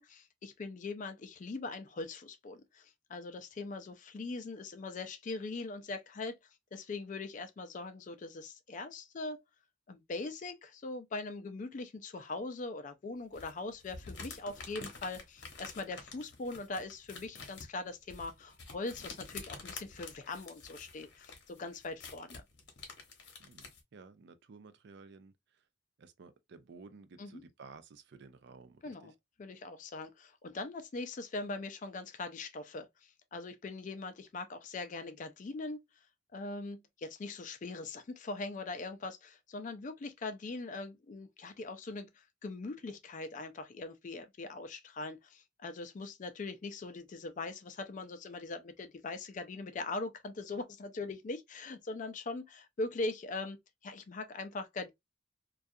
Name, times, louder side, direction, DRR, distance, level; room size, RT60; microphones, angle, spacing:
voice 1, 0.0-6.4 6.7-9.4 9.9-22.4 27.2-27.4 28.8-29.1 29.4-35.8 36.3-53.6 53.8-54.9, left 3 dB, 40° left, 0.4 m, -41 dB
sound 1, 13.3-23.8, left 4 dB, 60° left, 0.8 m, -49 dB
voice 2, 23.4-25.6 26.0-29.1, right 4 dB, 60° right, 0.4 m, -54 dB
2.3 x 2.3 x 2.5 m
head